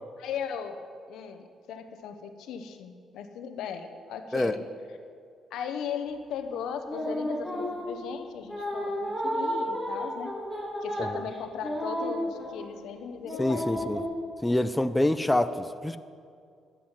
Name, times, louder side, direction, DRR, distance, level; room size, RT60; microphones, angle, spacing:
voice 1, 0.2-0.8 1.1-4.6 5.5-10.3 10.8-13.9, left 7 dB, 85° left, 7 dB, 0.9 m, -37 dB
sound 1, 6.9-8.0 8.5-12.7 13.2-14.0, equal, 5° right, 3.2 m, -32 dB
voice 2, 13.4-14.0 14.4-16.0, left 1 dB, 10° left, 11 dB, 0.5 m, -26 dB
11.5 x 7.8 x 7.4 m, 2.3 s
cardioid pair, 90°, 0 cm